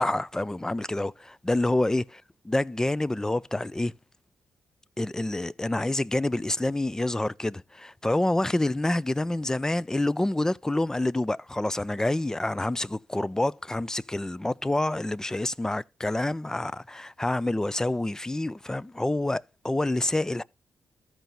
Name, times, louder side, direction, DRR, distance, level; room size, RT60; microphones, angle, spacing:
voice 1, 0.0-2.0 2.5-3.9 5.0-20.4, left 1 dB, 10° left, 0.3 m, -27 dB
13.5 x 4.6 x 3.9 m
cardioid pair, 60°, 5 cm